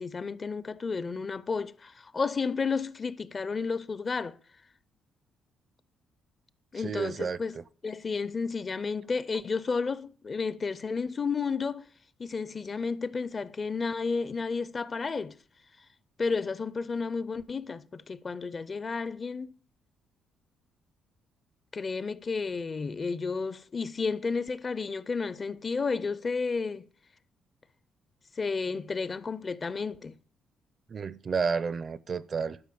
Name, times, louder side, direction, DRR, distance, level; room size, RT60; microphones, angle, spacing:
voice 1, 0.0-4.4 6.7-7.6 7.8-11.9 12.2-15.4 16.2-19.6 21.7-26.9 28.4-30.2, left 4 dB, 25° left, 0.5 m, -32 dB
voice 2, 6.8-7.6 30.9-32.6, right 5 dB, 30° right, 0.5 m, -31 dB
11.5 x 5.5 x 8.4 m
cardioid pair, 165°, 0 cm